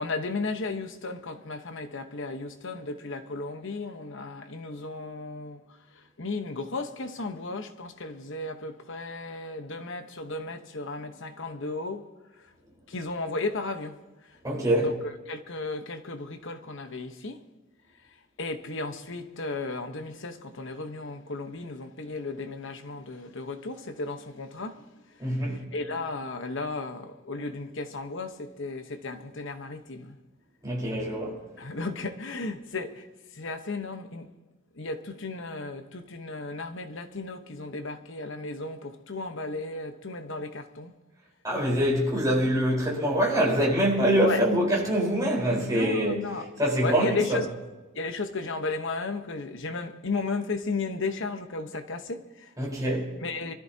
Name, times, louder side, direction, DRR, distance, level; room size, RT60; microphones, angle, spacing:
voice 1, 0.0-5.6 5.9-12.1 12.4-12.5 12.9-14.0 14.2-14.9 15.3-17.4 18.4-30.2 31.6-33.1 33.3-34.3 34.7-40.9 44.2-44.4 45.5-46.5 46.8-47.6 47.9-52.5 53.2-53.5, left 3 dB, 60° left, 1.1 m, -34 dB
voice 2, 14.4-14.9 25.2-25.6 30.6-31.4 41.4-46.2 46.6-47.4 52.6-53.1, equal, 15° right, 4.4 m, -24 dB
24.0 x 13.5 x 2.9 m
head